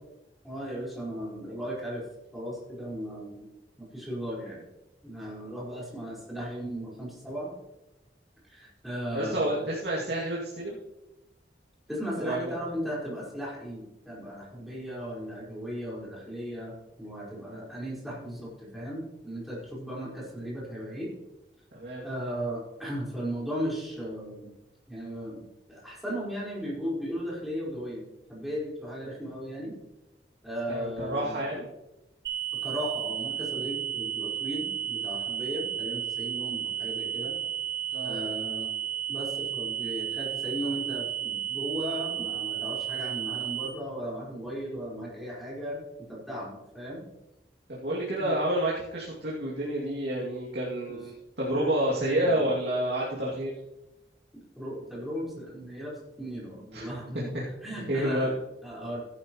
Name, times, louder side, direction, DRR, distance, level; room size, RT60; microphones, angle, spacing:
voice 1, 0.4-2.0 2.3-3.5 3.8-4.6 5.0-7.5 8.5-9.6 11.9-21.1 22.0-24.5 24.9-29.7 30.4-31.6 32.6-37.4 38.0-38.7 39.1-45.8 46.1-47.0 48.2-48.3 50.9-51.0 52.2-52.5 54.5-57.3 57.6-59.0, equal, ahead, -6 dB, 4.6 m, -36 dB
voice 2, 9.1-10.8 12.2-12.5 21.7-22.0 30.7-31.7 37.9-38.2 47.7-53.5 56.7-56.9 57.3-57.4 57.7-58.3, right 1 dB, 70° right, -7 dB, 2.5 m, -29 dB
sound 1, 32.2-43.7, right 10 dB, 90° right, 4.9 m, -33 dB
15.0 x 10.5 x 3.1 m, 0.96 s
head